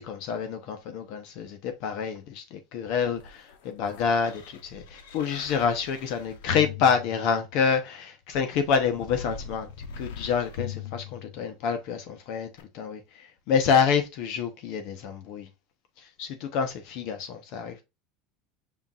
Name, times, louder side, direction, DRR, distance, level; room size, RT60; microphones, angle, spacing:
voice 1, 0.0-9.7 10.0-12.5 12.7-15.5 16.2-17.8, left 6 dB, 65° left, 1.0 m, -27 dB
sound 1, 2.9-7.8 8.5-11.8 12.6-12.7, left 7 dB, 90° left, 1.0 m, -41 dB
5.9 x 3.6 x 2.5 m
supercardioid pair, 125°, 0 cm